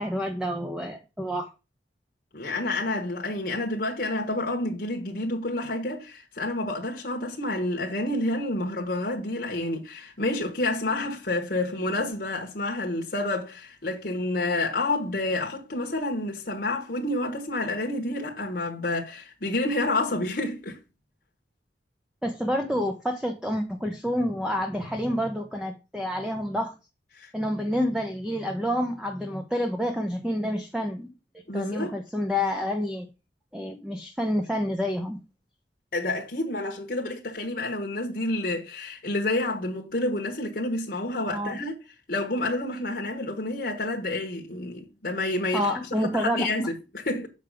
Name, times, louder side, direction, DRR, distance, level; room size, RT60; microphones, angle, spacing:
voice 1, 0.0-1.5 22.2-26.7 27.3-31.1 31.5-33.1 33.5-35.2 41.2-41.6 45.5-46.7, equal, 5° right, 0.8 m, -28 dB
voice 2, 2.3-20.8 27.2-27.3 31.5-31.9 35.9-41.8 42.1-45.7 46.0-47.3, left 2 dB, 55° left, 1.3 m, -29 dB
7.3 x 5.3 x 4.9 m
head